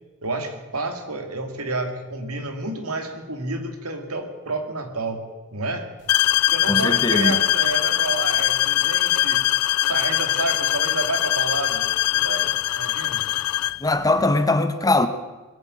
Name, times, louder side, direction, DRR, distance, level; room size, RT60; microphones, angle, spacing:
voice 1, 0.2-5.2 5.5-5.9 6.5-9.5 9.8-13.2, right 2 dB, 80° right, 2.3 m, -30 dB
sound 1, 6.1-13.8, left 14 dB, 90° left, 0.4 m, -22 dB
voice 2, 6.7-7.4 13.8-15.1, left 2 dB, 15° left, 0.8 m, -20 dB
21.0 x 8.0 x 8.6 m
head